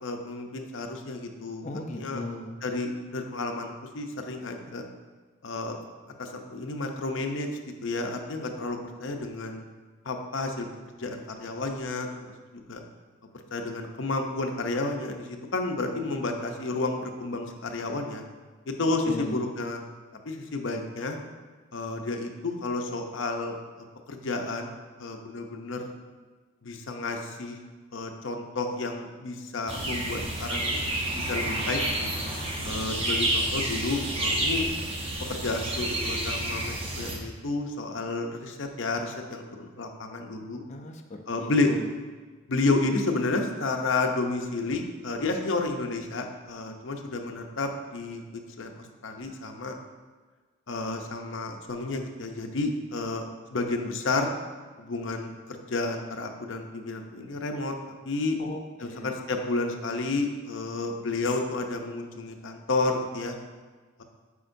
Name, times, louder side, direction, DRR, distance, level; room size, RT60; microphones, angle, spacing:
voice 1, 0.0-2.2 2.6-4.8 5.4-5.8 6.2-7.5 7.8-9.6 10.0-10.7 11.0-12.8 13.5-18.2 18.7-19.8 20.3-21.2 21.7-23.6 24.1-24.7 25.0-25.9 26.6-27.6 27.9-32.1 32.6-34.7 35.3-40.6 41.3-41.7 42.5-49.8 50.7-53.2 53.5-54.3 54.8-57.7 58.0-58.4 58.8-63.4, left 3 dB, 75° left, 4 dB, 0.7 m, -31 dB
voice 2, 1.6-2.6 19.1-19.4 40.7-41.9 58.4-59.2, left 2 dB, 35° left, 4 dB, 0.5 m, -37 dB
sound 1, 29.7-37.2, right 1 dB, 30° right, 0.8 m, -29 dB
8.3 x 5.1 x 2.6 m, 1.4 s
head